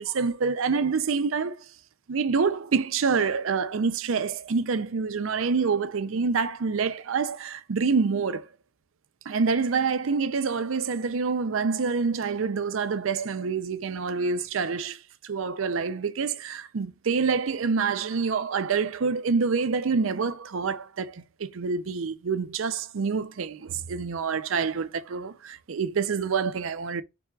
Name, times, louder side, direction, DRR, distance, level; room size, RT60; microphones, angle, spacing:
voice 1, 0.0-1.5 2.1-8.5 9.3-15.0 15.2-27.0, right 5 dB, 85° right, 0.5 m, -27 dB
5.8 x 3.4 x 2.3 m
head